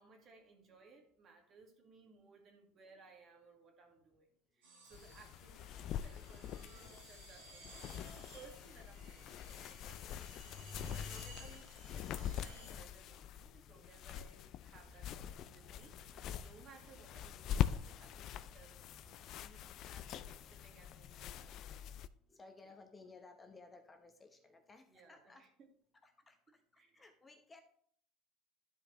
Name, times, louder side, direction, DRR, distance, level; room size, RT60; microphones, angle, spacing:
voice 1, 0.0-4.3 4.5-21.7 22.6-22.8 24.9-25.7 26.8-27.1, right 4 dB, 45° right, 2 dB, 2.0 m, -62 dB
sound 1, 4.6-12.7, equal, 90° right, 3.6 m, -55 dB
sound 2, 4.9-22.1, left 10 dB, 55° left, 0.4 m, -44 dB
sound 3, 14.8-21.0, right 3 dB, 20° right, 0.9 m, -64 dB
voice 2, 22.3-25.4 26.0-26.4 26.9-27.6, left 3 dB, 20° left, 5 dB, 0.9 m, -58 dB
11.5 x 5.0 x 3.1 m, 0.64 s
supercardioid pair, 95°, 0 cm